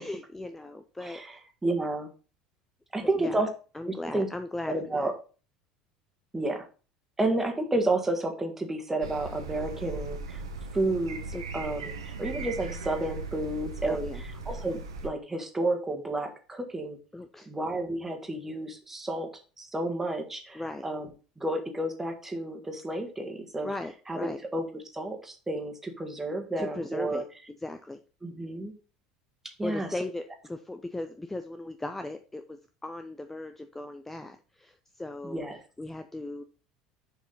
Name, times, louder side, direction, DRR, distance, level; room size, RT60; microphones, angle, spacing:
voice 1, 0.0-1.2 3.0-3.5 3.7-5.1 11.3-11.4 13.9-14.2 17.1-17.5 20.5-20.9 23.6-24.4 26.6-27.2 27.6-28.0 29.6-35.4 35.8-36.4, left 2 dB, 10° left, 8 dB, 0.6 m, -37 dB
voice 2, 1.0-2.1 2.9-3.5 3.8-4.3 4.7-5.1 6.3-6.7 7.2-10.4 10.7-14.1 14.4-17.0 17.4-19.3 19.6-21.1 21.4-23.7 24.1-27.2 28.2-28.7 29.6-29.9 35.2-35.6, right 2 dB, 15° right, 4 dB, 1.7 m, -31 dB
sound 1, 9.0-15.1, right 4 dB, 80° right, 0.9 m, -38 dB
6.7 x 5.0 x 3.9 m, 0.36 s
hypercardioid pair, 70°, 3 cm